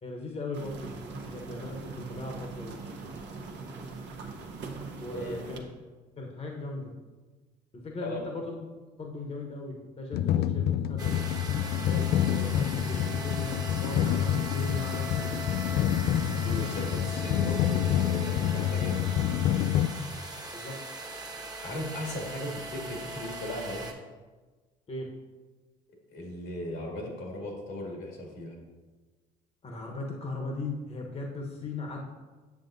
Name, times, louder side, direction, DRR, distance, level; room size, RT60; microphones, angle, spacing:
voice 1, 0.0-2.8 5.0-5.6 6.2-6.9 7.7-8.6 9.0-11.2 11.9-15.9 20.5-20.7 24.9-25.1 29.6-32.1, left 2 dB, 35° left, 1 dB, 1.1 m, -38 dB
sound 1, 0.5-5.6, right 4 dB, 65° right, 0.9 m, -41 dB
voice 2, 5.1-5.4 8.0-8.2 16.3-19.1 21.6-23.9 26.1-28.6, left 1 dB, 75° left, -1 dB, 2.1 m, -37 dB
sound 2, 10.1-19.9, left 10 dB, 55° left, 0.4 m, -27 dB
sound 3, 11.0-23.9, right 2 dB, 20° right, 1.1 m, -39 dB
7.4 x 7.1 x 2.7 m, 1.3 s
supercardioid pair, 65°, 20 cm